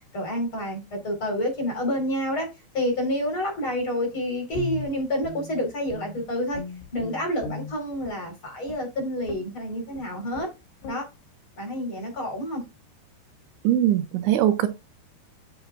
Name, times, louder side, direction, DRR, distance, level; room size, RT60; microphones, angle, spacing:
voice 1, 0.1-2.5 2.7-6.6 6.9-10.5 10.9-11.1 11.6-12.6, equal, 30° left, 4.5 m, -28 dB
Guitar, 4.5-6.2 6.5-8.2 8.6-8.9 9.3-9.5 9.9-10.1 10.3-10.5 10.8-11.0, left 5 dB, 65° left, 5.0 m, -37 dB
voice 2, 13.6-14.7, right 12 dB, 85° right, 3.4 m, -21 dB
9.7 x 7.4 x 2.4 m
omnidirectional pair, 5.3 m